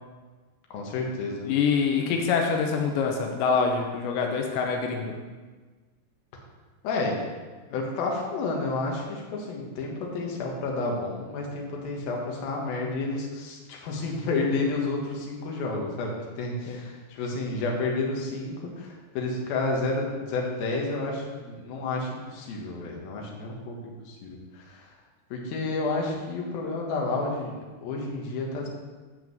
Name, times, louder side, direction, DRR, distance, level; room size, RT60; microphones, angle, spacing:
voice 1, 0.7-1.5 6.8-7.2 7.7-24.9 25.3-27.5 27.8-28.7, left 3 dB, 65° left, -1 dB, 3.1 m, -30 dB
voice 2, 1.4-5.2 16.7-16.8, left 5 dB, 90° left, 2 dB, 3.0 m, -25 dB
9.3 x 5.1 x 7.8 m, 1.4 s
omnidirectional pair, 5.0 m